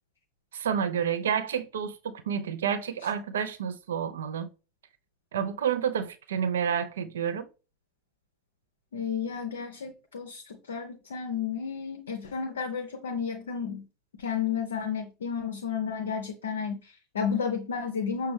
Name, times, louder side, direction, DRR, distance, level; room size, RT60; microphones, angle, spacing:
voice 1, 0.5-4.5 5.3-7.5, right 8 dB, 65° right, 0.4 m, -29 dB
voice 2, 8.9-13.8 14.2-18.3, left 6 dB, 70° left, 0.5 m, -32 dB
5.9 x 2.2 x 3.2 m
figure-of-eight pair, 80°, 0 cm